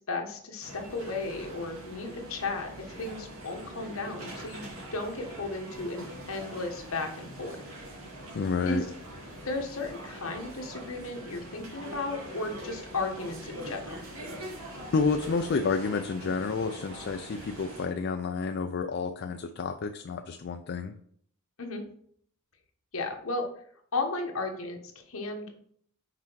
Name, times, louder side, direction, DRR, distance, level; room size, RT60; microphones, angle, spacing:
voice 1, 0.1-7.7 8.7-8.9 9.4-14.0 21.6-21.8 22.9-23.4 23.9-25.5, left 3 dB, 70° left, 3 dB, 1.2 m, -35 dB
sound 1, 0.6-17.9, right 1 dB, 75° right, 2.3 m, -43 dB
voice 2, 8.3-8.9 14.9-20.9, left 4 dB, 55° left, 6 dB, 0.4 m, -30 dB
5.9 x 4.4 x 4.6 m, 0.63 s
head